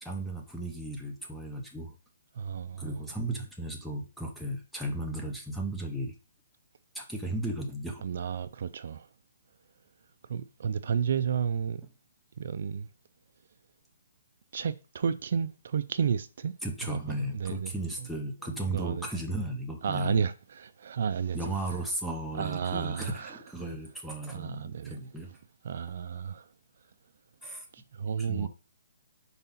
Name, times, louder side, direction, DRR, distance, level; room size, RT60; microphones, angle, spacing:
voice 1, 0.0-1.9 2.8-6.1 6.9-8.1 16.6-20.2 21.3-25.3 27.4-27.7 28.2-28.5, right 1 dB, ahead, 0.7 m, -35 dB
voice 2, 2.4-2.9 8.0-9.1 10.3-11.8 12.4-12.9 14.5-16.5 16.9-17.7 18.7-19.0 19.8-21.4 22.4-23.4 24.3-25.0 25.6-26.5 27.7-28.5, right 7 dB, 50° right, 0.4 m, -32 dB
4.6 x 4.1 x 5.6 m
hypercardioid pair, 170°, 0 cm